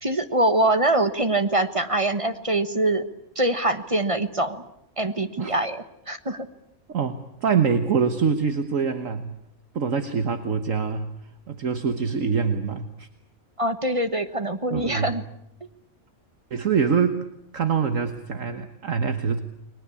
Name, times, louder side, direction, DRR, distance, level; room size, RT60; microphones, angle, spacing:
voice 1, 0.0-3.0 3.4-4.6 5.0-6.5 13.6-15.2, right 2 dB, 25° right, 9 dB, 1.3 m, -24 dB
voice 2, 6.9-9.3 9.7-11.1 11.5-13.1 14.7-15.1 16.5-17.2 17.5-19.4, right 6 dB, 65° right, 8 dB, 1.7 m, -24 dB
30.0 x 21.5 x 8.5 m, 0.75 s
omnidirectional pair, 1.5 m